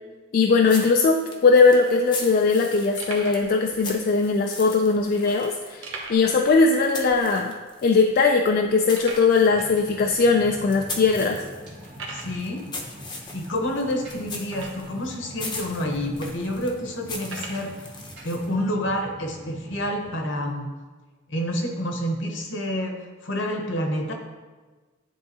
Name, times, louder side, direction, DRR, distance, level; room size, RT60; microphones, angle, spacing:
voice 1, 0.3-7.5 7.8-11.4, left 4 dB, 50° left, 3 dB, 0.3 m, -20 dB
sound 1, 0.6-8.0 8.4-18.6, left 3 dB, 25° left, 0.7 m, -40 dB
sound 2, 1.9-2.0 2.5-2.6 3.0-3.5 4.3-4.4 5.8-6.4 6.7-6.8 7.2-7.3 7.9-8.0 8.9-9.4 10.2-10.3 10.9-11.0 11.9-12.4 14.5-15.0 15.8-15.9 17.2-17.7, right 3 dB, 80° right, 1.0 m, -38 dB
sound 3, 9.4-20.2, equal, 55° right, 1.6 m, -43 dB
voice 2, 12.1-12.7 13.3-17.8 18.2-20.7 21.3-24.1, equal, 70° left, 2 dB, 1.0 m, -28 dB
10.5 x 3.8 x 2.8 m, 1.3 s
head